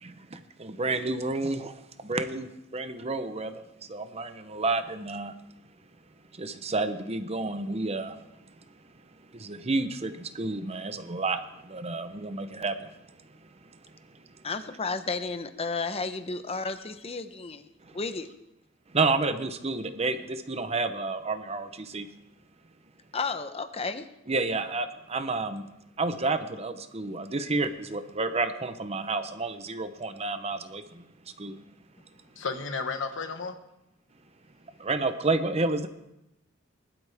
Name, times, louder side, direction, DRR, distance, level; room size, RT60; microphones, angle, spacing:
voice 1, 0.0-1.7 2.0-3.6 3.9-5.4 6.4-8.2 9.3-12.9 17.9-18.0 18.9-22.1 24.3-25.6 26.0-31.1 31.4-31.6 34.8-35.9, right 3 dB, 35° right, 10 dB, 0.8 m, -30 dB
voice 2, 14.4-17.7 17.9-18.3 23.1-24.1, left 4 dB, 30° left, 10 dB, 0.8 m, -32 dB
voice 3, 32.4-33.6, left 4 dB, 75° left, 6 dB, 1.4 m, -32 dB
20.0 x 12.0 x 3.5 m, 0.88 s
head